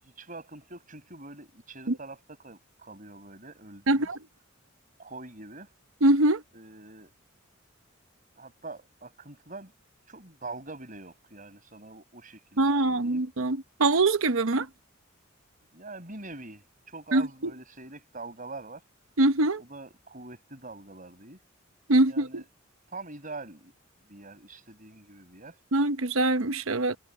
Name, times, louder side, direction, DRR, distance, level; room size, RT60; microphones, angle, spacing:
voice 1, 0.0-4.1 5.0-5.7 6.5-7.1 8.4-9.7 10.1-13.2 15.7-18.9 19.6-21.4 22.1-22.5 22.9-23.7 24.1-25.6, right 3 dB, 40° right, 5.8 m, -44 dB
voice 2, 3.9-4.2 6.0-6.4 12.6-14.7 17.1-17.3 19.2-19.6 21.9-22.4 25.7-27.0, right 2 dB, 75° right, 1.0 m, -23 dB
head